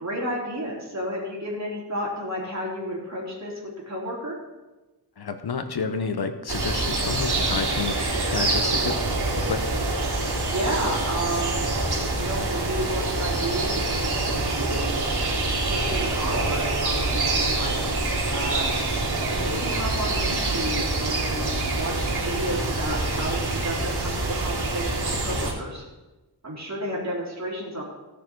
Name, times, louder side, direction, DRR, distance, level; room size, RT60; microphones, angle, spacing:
voice 1, 0.0-3.6 3.9-4.4 7.9-8.8 10.5-11.7 12.1-14.9 15.7-18.0 18.3-18.8 19.3-25.8 26.4-27.8, right 1 dB, 40° right, -3 dB, 4.0 m, -32 dB
voice 2, 5.2-8.0 8.3-9.0 9.4-9.6, left 5 dB, 65° left, 8 dB, 0.9 m, -29 dB
sound 1, 6.5-25.5, right 2 dB, 65° right, 3.7 m, -26 dB
17.5 x 6.8 x 4.6 m, 1.1 s
wide cardioid pair, 95°, 42 cm